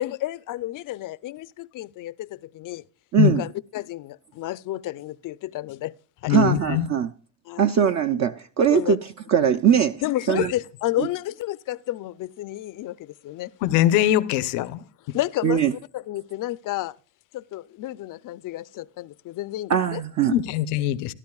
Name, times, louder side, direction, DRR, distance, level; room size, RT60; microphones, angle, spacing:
voice 1, 0.0-2.8 3.2-5.9 6.2-6.4 7.5-7.7 8.7-9.0 10.0-13.5 14.6-14.7 15.1-15.6 15.9-16.9 17.3-20.0, left 15 dB, 45° left, 0.5 m, -31 dB
voice 2, 3.1-3.4 6.3-7.1 7.6-10.0 10.3-10.5 11.0-11.1 15.4-15.7 19.7-20.3, right 8 dB, 35° right, 0.5 m, -21 dB
voice 3, 6.3-6.9 10.4-10.5 13.6-14.8 20.3-21.1, left 12 dB, 90° left, 0.9 m, -22 dB
13.5 x 12.5 x 2.3 m
cardioid pair, 120°, 48 cm